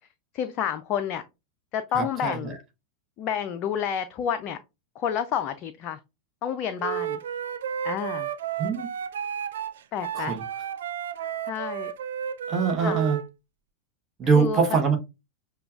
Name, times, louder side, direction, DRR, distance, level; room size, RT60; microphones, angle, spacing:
voice 1, 0.3-1.2 1.7-2.6 3.2-4.6 5.0-6.0 6.4-7.2 7.8-8.3 9.9-10.4 11.5-11.9 12.8-13.0 14.3-14.6, left 8 dB, 35° left, 0.3 m, -29 dB
voice 2, 1.9-2.5 8.6-8.9 10.1-10.4 12.5-13.2 14.2-15.0, right 5 dB, 25° right, 0.9 m, -23 dB
Wind instrument woodwind instrument, 6.8-13.2, right 9 dB, 60° right, 0.4 m, -32 dB
6.6 x 2.3 x 2.4 m
figure-of-eight pair, 90°, 0 cm